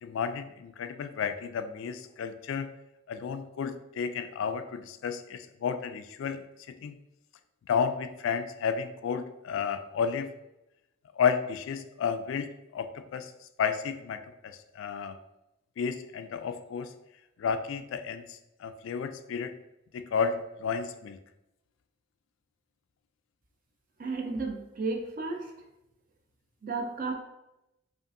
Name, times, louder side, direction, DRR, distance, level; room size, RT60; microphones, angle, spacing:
voice 1, 0.0-2.7 3.1-7.0 7.7-10.3 11.2-12.5 12.7-13.3 13.6-15.1 15.8-16.9 17.4-18.2 18.6-19.5 19.9-21.2, left 6 dB, 70° left, 9 dB, 0.3 m, -32 dB
voice 2, 24.0-25.5 26.6-27.1, right 3 dB, 45° right, 3 dB, 0.5 m, -33 dB
5.2 x 2.5 x 2.6 m, 0.90 s
head